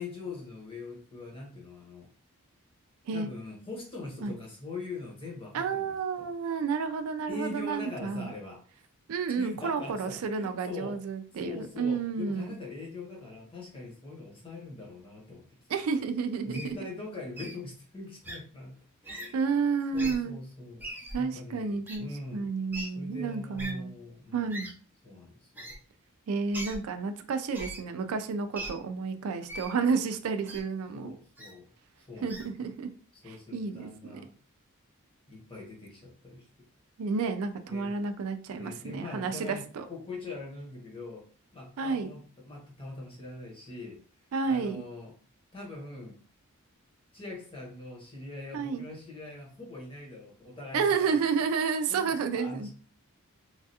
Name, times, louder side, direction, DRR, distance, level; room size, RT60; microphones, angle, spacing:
voice 1, 0.0-2.1 3.1-6.3 7.3-8.6 9.4-11.0 11.4-15.5 16.4-18.7 19.0-19.4 19.9-20.9 21.2-22.5 22.9-24.6 25.0-25.8 30.9-31.7 32.1-32.3 33.2-34.3 35.3-36.5 37.7-37.9 38.6-39.6 39.9-41.3 41.5-44.0 44.5-45.1 45.5-46.2 47.1-51.2 51.9-52.7, left 3 dB, 25° left, -2 dB, 1.0 m, -42 dB
voice 2, 5.5-8.3 9.1-12.6 15.7-16.8 19.1-20.4 21.1-24.0 24.3-24.7 26.3-31.1 32.2-32.9 33.3-34.2 37.0-39.8 41.8-42.1 44.3-44.8 48.5-48.8 50.7-52.7, right 5 dB, 75° right, 8 dB, 0.4 m, -31 dB
Wild animals, 16.5-16.7 17.4-17.5 18.2-18.4 19.0-19.3 19.9-20.1 20.8-21.2 21.9-22.0 22.7-22.9 23.6-23.7 24.5-24.7 25.5-25.7 26.5-26.8 27.5-27.8 28.5-28.7 29.5-29.7 30.5-30.6 31.4-31.5 32.3-32.5, right 1 dB, 10° right, 0.5 m, -39 dB
3.2 x 2.3 x 2.7 m, 0.40 s
head